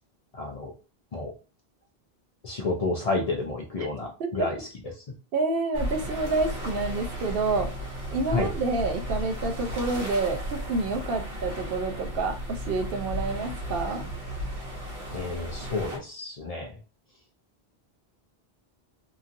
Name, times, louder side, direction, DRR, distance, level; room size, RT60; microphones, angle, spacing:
voice 1, 0.3-0.7 1.1-1.3 2.4-4.7 5.0-5.1 8.3-8.5 15.1-16.8, left 3 dB, 45° left, 1 dB, 0.5 m, -30 dB
voice 2, 5.3-7.7 8.1-14.0, right 3 dB, 70° right, 5 dB, 0.7 m, -28 dB
sound 1, 5.7-16.0, equal, 85° right, 1.1 m, -34 dB
2.9 x 2.6 x 2.5 m, 0.33 s
omnidirectional pair, 1.0 m